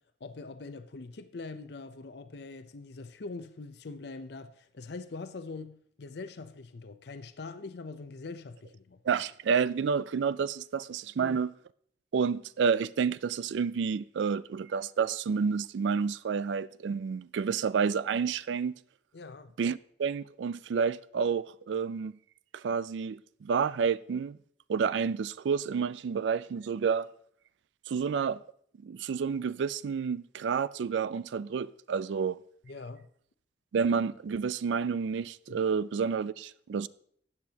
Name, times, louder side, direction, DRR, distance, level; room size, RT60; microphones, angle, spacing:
voice 1, 0.2-9.0 11.2-11.4 19.1-19.5 32.6-33.1 35.5-35.6, left 3 dB, 65° left, 0.5 m, -43 dB
voice 2, 9.1-11.5 12.1-18.7 19.6-22.1 22.5-24.4 24.7-27.1 27.9-28.4 28.8-32.4 33.7-36.9, right 6 dB, 80° right, 0.3 m, -29 dB
13.0 x 8.4 x 2.8 m
head